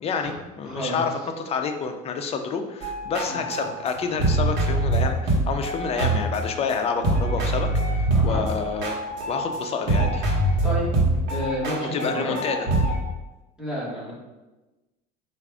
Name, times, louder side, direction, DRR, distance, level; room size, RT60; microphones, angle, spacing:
voice 1, 0.0-9.0 9.3-10.2 11.9-12.7, left 5 dB, 30° left, 5 dB, 0.4 m, -28 dB
voice 2, 0.6-1.0 3.3-3.4 8.1-8.4 10.6-10.9 11.3-12.3 13.6-14.1, equal, 5° right, -6 dB, 1.4 m, -30 dB
sound 1, 2.8-6.7 7.0-9.6 9.9-13.0, right 2 dB, 65° right, 1.2 m, -24 dB
4.7 x 2.5 x 3.4 m, 1.1 s
supercardioid pair, 120°, 20 cm